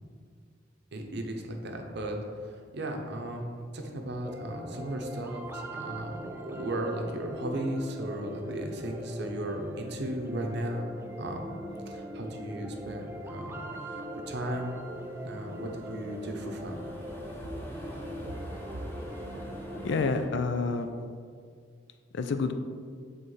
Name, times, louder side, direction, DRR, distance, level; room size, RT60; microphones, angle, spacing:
voice 1, 0.9-11.5 11.8-14.0 14.3-14.8 15.2-16.8, right 1 dB, 60° right, 3 dB, 0.7 m, -36 dB
sound 1, 4.2-20.2, equal, 10° right, 0.3 m, -41 dB
sound 2, 6.9-9.0 9.3-20.3, equal, 10° left, 0.7 m, -48 dB
voice 2, 19.8-20.9 22.1-22.6, left 4 dB, 65° left, 8 dB, 0.4 m, -28 dB
7.7 x 4.0 x 3.2 m, 2.1 s
head